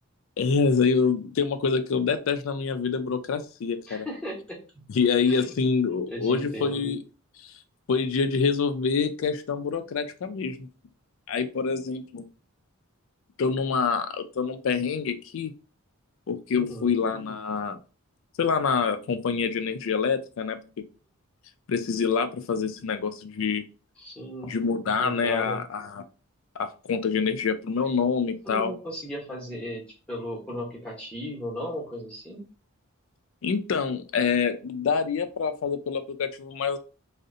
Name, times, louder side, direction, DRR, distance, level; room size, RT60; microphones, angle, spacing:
voice 1, 0.4-4.1 4.9-7.0 7.4-7.5 7.9-10.7 11.3-12.3 13.4-15.5 16.3-17.8 18.4-20.6 21.7-23.6 24.4-26.0 26.6-28.7 33.4-36.8, left 5 dB, 60° left, 9 dB, 0.3 m, -26 dB
voice 2, 3.9-4.9 5.2-5.5 6.1-6.9 16.5-16.9 24.0-24.6 25.0-25.6 28.4-32.4, equal, 5° left, -3 dB, 0.7 m, -36 dB
2.6 x 2.0 x 2.5 m, 0.34 s
head